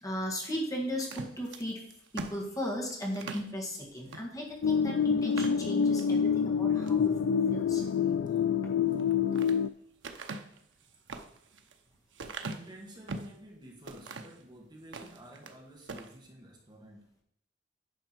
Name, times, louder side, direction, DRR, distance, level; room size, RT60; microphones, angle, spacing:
voice 1, 0.0-1.8 2.1-7.8, equal, 20° left, -1 dB, 1.8 m, -36 dB
sound 1, 1.0-3.5 4.1-4.3 4.6-4.7 5.2-6.1 6.6-7.1 8.9-9.6 10.0-13.4 13.9-14.4 14.8-15.6 15.8-16.1, right 3 dB, 90° right, 0.8 m, -42 dB
sound 2, 4.6-9.7, left 7 dB, 70° left, 0.3 m, -27 dB
voice 2, 12.4-17.0, right 1 dB, 25° right, -1 dB, 1.6 m, -50 dB
9.5 x 5.8 x 4.5 m, 0.74 s
head